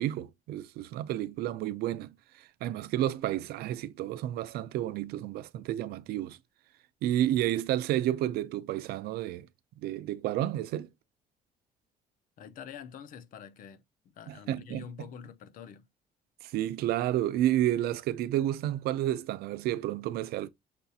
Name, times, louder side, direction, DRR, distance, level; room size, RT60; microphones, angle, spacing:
voice 1, 0.0-2.1 2.4-6.4 7.0-9.5 9.8-10.9 14.3-15.1 16.4-20.5, right 13 dB, 80° right, 0.4 m, -31 dB
voice 2, 12.4-15.9, left 7 dB, 60° left, 0.6 m, -46 dB
6.7 x 2.4 x 2.7 m
cardioid pair, 135°, 16 cm